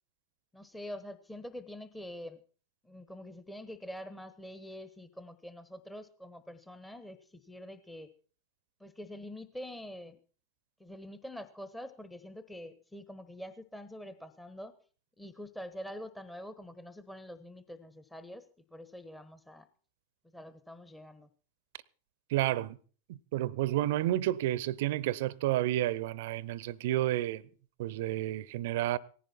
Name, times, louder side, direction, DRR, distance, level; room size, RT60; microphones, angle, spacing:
voice 1, 0.5-2.4 2.8-8.1 8.8-10.2 10.8-14.7 15.2-18.4 18.7-19.7 20.3-21.3, equal, 5° left, 1.1 m, -45 dB
voice 2, 22.3-22.8 23.1-27.4 27.8-29.0, right 14 dB, 50° right, 0.8 m, -30 dB
18.5 x 15.5 x 4.4 m
figure-of-eight pair, 90°, 0 cm